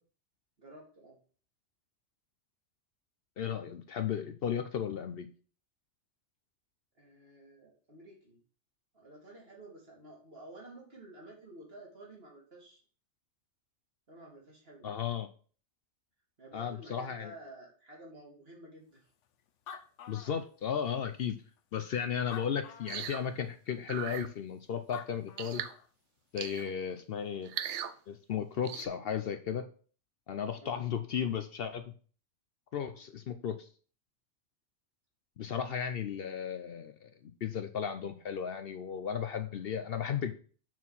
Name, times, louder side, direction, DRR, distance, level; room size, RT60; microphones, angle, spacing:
voice 1, 0.6-1.2 7.0-8.4 8.9-12.8 14.1-14.9 16.4-19.1 30.6-30.8, right 1 dB, 55° right, -3 dB, 2.8 m, -52 dB
voice 2, 3.4-5.3 14.8-15.3 16.5-17.3 20.1-21.4 21.7-25.7 26.3-27.5 28.1-29.6 30.3-31.8 32.7-33.7 35.4-40.3, left 8 dB, 60° left, 8 dB, 0.8 m, -35 dB
Animal, 19.2-19.3 19.5-20.9 21.6-21.7 22.2-23.2 24.6-24.7 24.9-25.9, left 8 dB, 80° left, 1.0 m, -47 dB
sound 1, 22.9-23.2 23.9-24.3 25.4-25.7 26.4-26.7 27.4-27.9 28.6-28.9, right 9 dB, 75° right, 0.9 m, -38 dB
6.1 x 4.7 x 5.5 m, 0.42 s
omnidirectional pair, 1.2 m